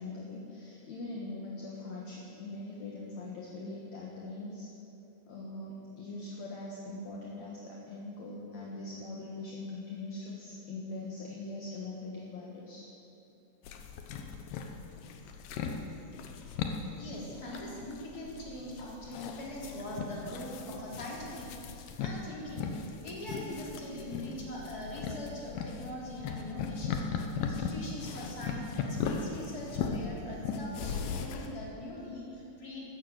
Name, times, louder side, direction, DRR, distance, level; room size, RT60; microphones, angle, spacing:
voice 1, 0.0-4.7 5.3-12.9, left 2 dB, 55° left, -4 dB, 2.6 m, -42 dB
sound 1, 13.7-31.5, left 6 dB, 75° left, 2.7 m, -38 dB
voice 2, 17.0-22.7 23.0-32.8, left 1 dB, 25° left, -4 dB, 3.7 m, -42 dB
13.5 x 13.0 x 8.2 m, 2.9 s
omnidirectional pair, 4.0 m